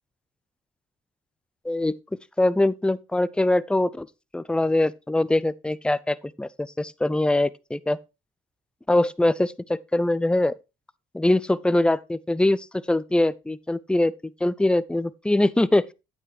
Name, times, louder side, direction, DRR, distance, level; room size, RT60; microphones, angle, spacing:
voice 1, 2.4-4.1 4.3-8.0 8.9-10.5 11.1-14.1 14.4-15.8, left 1 dB, 5° left, 0.4 m, -23 dB
9.0 x 8.5 x 3.2 m
cardioid pair, 90°, 20 cm